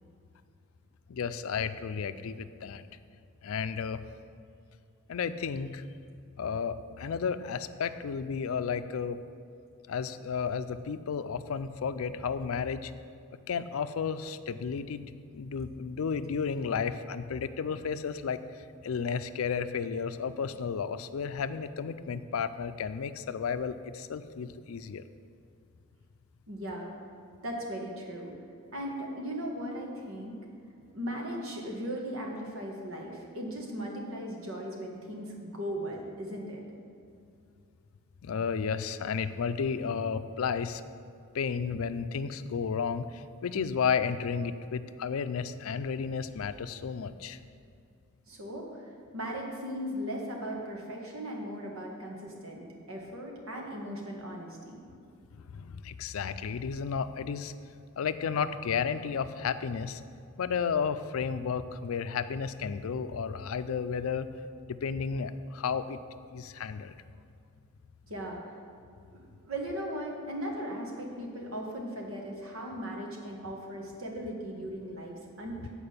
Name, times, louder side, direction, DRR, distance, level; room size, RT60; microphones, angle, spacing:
voice 1, 1.1-2.9 3.4-4.0 5.1-5.8 6.4-9.2 9.9-12.9 13.5-25.0 38.2-40.8 41.3-47.4 55.4-57.5 58.0-60.0 60.4-64.3 64.7-66.0 66.3-66.9, left 6 dB, 90° left, 12 dB, 0.4 m, -33 dB
voice 2, 26.5-27.0 27.4-28.3 28.7-30.4 30.9-36.6 48.3-54.8 68.1-68.6 69.1-75.7, equal, 80° right, -1 dB, 1.6 m, -38 dB
8.8 x 4.8 x 6.6 m, 2.4 s
head